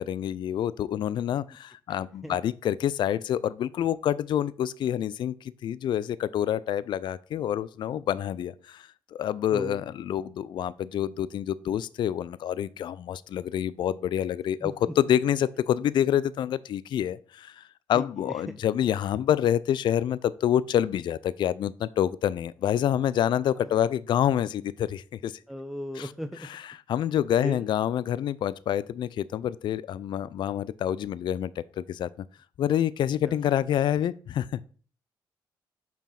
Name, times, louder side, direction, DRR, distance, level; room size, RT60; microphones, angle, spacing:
voice 1, 0.0-25.4 26.0-26.1 26.9-32.1 32.6-34.6, left 10 dB, 60° left, 0.3 m, -27 dB
voice 2, 1.9-2.4 9.5-9.9 14.6-14.7 17.9-18.5 23.5-23.8 25.5-26.5 27.4-27.7 33.2-33.4, equal, 5° right, 0.5 m, -37 dB
5.8 x 4.5 x 5.7 m
cardioid pair, 90°, 9 cm